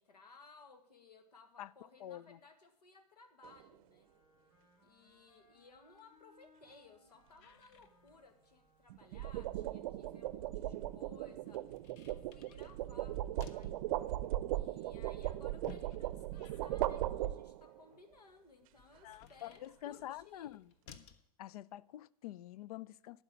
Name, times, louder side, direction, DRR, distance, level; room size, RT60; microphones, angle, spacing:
voice 1, 0.0-4.1 4.8-11.8 12.0-13.2 13.5-13.9 14.5-20.5, left 4 dB, 90° left, 1.5 m, -60 dB
voice 2, 2.0-2.4 19.0-20.7 21.0-21.1 21.4-23.2, left 13 dB, 70° left, 0.4 m, -47 dB
sound 1, 3.4-3.7 8.9-17.8, right 14 dB, 60° right, 0.6 m, -38 dB
Wind instrument woodwind instrument, 4.0-9.3, left 2 dB, 25° left, 4.2 m, -69 dB
sound 2, 7.4-21.3, left 7 dB, 50° left, 1.0 m, -61 dB
11.5 x 5.2 x 8.6 m
hypercardioid pair, 100°, 20 cm